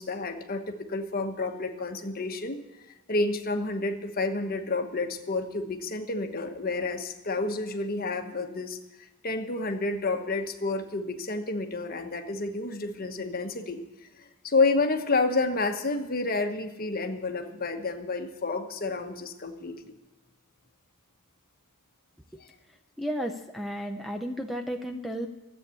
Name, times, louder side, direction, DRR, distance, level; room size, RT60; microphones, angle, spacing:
voice 1, 0.0-2.6 3.1-8.8 9.2-13.8 14.4-20.0, left 3 dB, 40° left, 6 dB, 1.2 m, -29 dB
voice 2, 23.0-25.3, equal, ahead, 5 dB, 0.6 m, -33 dB
13.5 x 8.3 x 8.3 m, 1.0 s
head